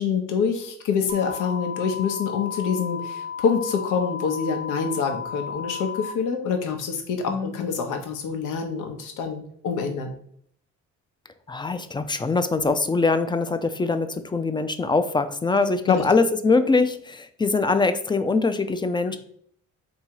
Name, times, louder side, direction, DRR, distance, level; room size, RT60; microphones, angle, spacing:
voice 1, 0.0-10.1 12.6-12.8 15.9-16.0, left 6 dB, 85° left, 5 dB, 0.8 m, -26 dB
sound 1, 1.1-6.1, left 7 dB, 35° right, 0.6 m, -34 dB
voice 2, 11.5-19.2, left 3 dB, 15° left, 10 dB, 0.3 m, -23 dB
3.7 x 2.7 x 4.4 m, 0.64 s
cardioid pair, 90°, 30 cm